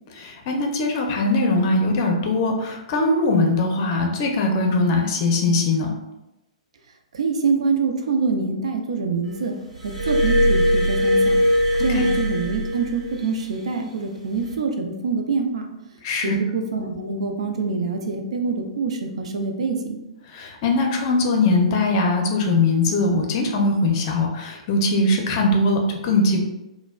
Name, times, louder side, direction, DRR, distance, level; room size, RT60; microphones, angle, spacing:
voice 1, 0.1-5.9 11.9-12.0 16.0-16.4 20.3-26.4, left 2 dB, 40° left, 2 dB, 0.6 m, -21 dB
voice 2, 7.1-9.5 9.8-11.4 11.8-15.7 16.2-20.0, right 4 dB, 60° right, 4 dB, 0.4 m, -25 dB
Glass, 9.8-13.4 14.3-14.5, equal, 75° right, 1.0 m, -20 dB
4.0 x 2.1 x 2.2 m, 0.96 s
figure-of-eight pair, 115°, 4 cm